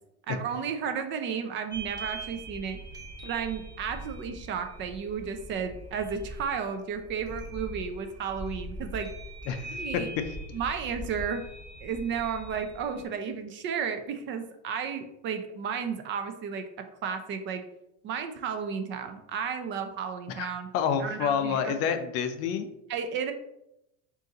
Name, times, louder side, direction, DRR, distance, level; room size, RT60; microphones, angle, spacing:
voice 1, 0.3-2.8 3.2-9.1 9.6-10.1 10.5-11.4 11.8-16.6 17.0-17.6 18.0-20.7 21.0-21.8 22.9-23.3, right 6 dB, 35° right, 7 dB, 0.4 m, -33 dB
sound 1, 1.7-13.0, right 1 dB, 10° right, 1.1 m, -42 dB
voice 2, 9.5-9.8 20.3-22.7, left 7 dB, 50° left, 8 dB, 0.4 m, -29 dB
3.9 x 2.6 x 3.8 m, 0.86 s
supercardioid pair, 135°, 33 cm